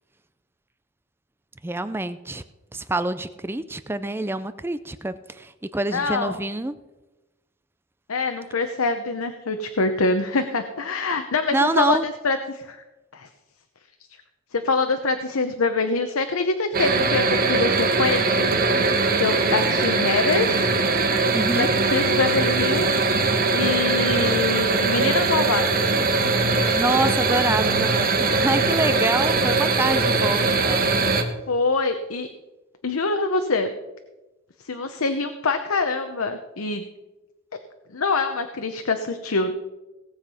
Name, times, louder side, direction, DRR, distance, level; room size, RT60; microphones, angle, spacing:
voice 1, 1.6-2.4 2.7-6.8 11.5-12.0 21.3-21.7 26.7-30.9, right 2 dB, 10° right, 12 dB, 0.4 m, -26 dB
voice 2, 5.9-6.4 8.1-12.8 13.1-13.3 14.5-18.6 19.2-20.7 21.5-22.9 23.5-25.7 26.5-26.8 31.5-32.3 32.8-33.7 34.6-36.9 37.9-39.5, left 3 dB, 90° left, 7 dB, 0.9 m, -25 dB
sound 1, 16.7-31.2, right 3 dB, 45° right, 1.3 m, -21 dB
18.0 x 7.3 x 5.6 m, 1.1 s
head